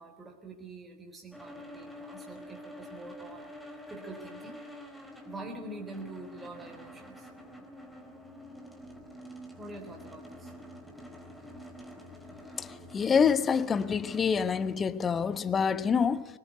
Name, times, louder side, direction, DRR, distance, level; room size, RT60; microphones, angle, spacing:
voice 1, 0.0-4.7 5.3-7.3 9.6-10.5, right 2 dB, 15° right, 3.6 m, -45 dB
sound 1, 1.3-14.8, left 1 dB, ahead, 4.2 m, -47 dB
voice 2, 12.9-16.3, left 6 dB, 20° left, 1.2 m, -26 dB
25.0 x 20.0 x 9.9 m
figure-of-eight pair, 90°, 0 cm